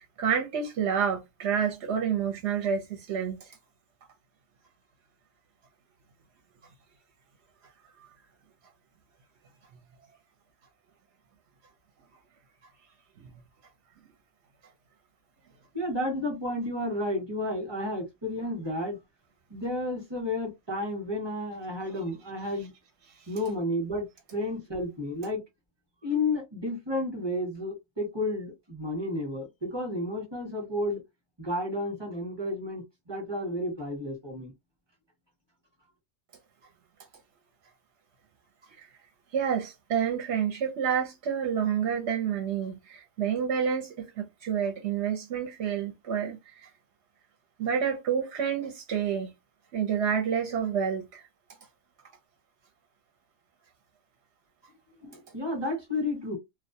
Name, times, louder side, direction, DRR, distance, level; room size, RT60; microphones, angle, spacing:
voice 1, 0.0-3.6 38.8-38.9 39.3-46.7 47.6-49.3 49.7-51.3, right 7 dB, 60° right, 0.8 m, -29 dB
voice 2, 15.7-19.0 19.5-22.7 23.3-25.4 26.0-31.0 31.4-34.5 55.0-56.4, left 1 dB, 25° right, 0.8 m, -32 dB
2.3 x 2.2 x 2.7 m
omnidirectional pair, 1.4 m